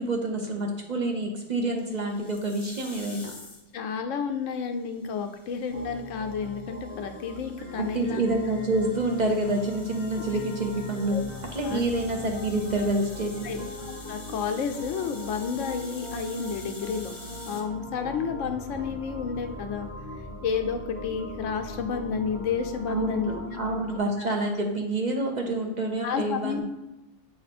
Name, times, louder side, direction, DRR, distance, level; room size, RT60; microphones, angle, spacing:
voice 1, 0.0-3.3 7.8-11.2 11.5-13.6 22.9-26.6, right 2 dB, 45° right, 2 dB, 0.7 m, -28 dB
sound 1, 1.8-3.8 4.8-17.6, left 2 dB, 30° left, 0.8 m, -48 dB
voice 2, 3.7-8.2 11.1-11.2 11.6-11.8 13.4-17.2 17.5-19.9 20.4-23.8 26.0-26.6, left 6 dB, 90° left, 6 dB, 1.0 m, -31 dB
sound 2, 5.7-24.0, left 1 dB, 25° right, 1.0 m, -40 dB
7.7 x 2.9 x 4.2 m, 0.97 s
omnidirectional pair, 1.2 m